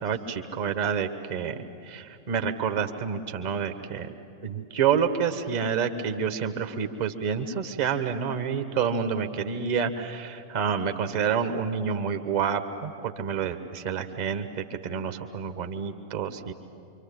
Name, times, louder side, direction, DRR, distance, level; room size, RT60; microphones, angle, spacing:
voice 1, 0.0-4.1 4.4-16.5, right 7 dB, 55° right, 7 dB, 1.7 m, -28 dB
28.0 x 24.5 x 8.6 m, 2.4 s
figure-of-eight pair, 90°, 0 cm